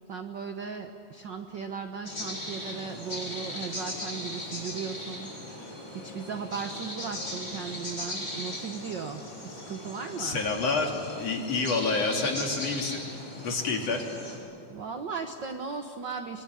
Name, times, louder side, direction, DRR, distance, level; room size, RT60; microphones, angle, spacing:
voice 1, 0.1-10.4 14.7-16.4, right 5 dB, 65° right, 6 dB, 1.1 m, -37 dB
sound 1, 2.0-14.4, left 1 dB, 25° left, 6.2 m, -38 dB
voice 2, 10.2-13.0 13.4-14.1, left 3 dB, 50° left, 1 dB, 3.8 m, -28 dB
26.0 x 23.0 x 9.8 m, 2.5 s
omnidirectional pair, 3.6 m